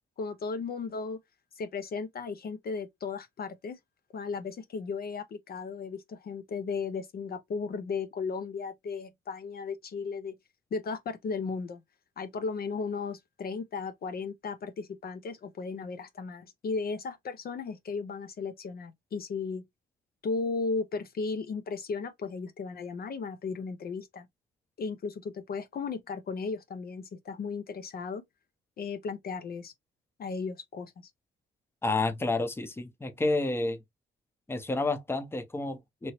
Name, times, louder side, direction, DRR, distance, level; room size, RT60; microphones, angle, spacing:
voice 1, 0.2-1.2 1.6-3.8 4.1-10.4 10.7-11.8 12.2-19.6 20.2-24.3 24.8-28.2 28.8-29.7 30.2-30.9, left 4 dB, 50° left, 0.6 m, -35 dB
voice 2, 31.8-33.8 34.5-36.1, left 2 dB, 10° left, 0.7 m, -30 dB
2.9 x 2.7 x 2.9 m
cardioid pair, 90°, 20 cm